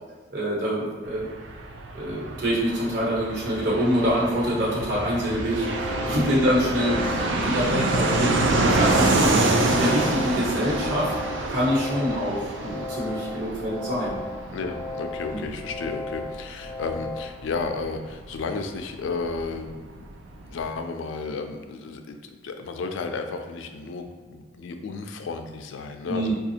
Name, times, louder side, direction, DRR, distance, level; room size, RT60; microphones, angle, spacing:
voice 1, 0.3-1.3 1.9-11.1 11.5-14.2 14.4-14.5 15.3-15.4 26.1-26.3, equal, 60° right, -5 dB, 1.2 m, -25 dB
Fixed-wing aircraft airplane, 1.0-19.4 19.7-19.8 20.0-20.7, right 2 dB, 80° right, 0.4 m, -27 dB
sound 1, 5.5-17.3, left 2 dB, 15° right, 0.6 m, -36 dB
voice 2, 6.0-6.3 14.5-20.1 20.4-26.3, left 4 dB, 85° left, 5 dB, 0.4 m, -33 dB
4.9 x 2.3 x 2.7 m, 1.5 s
head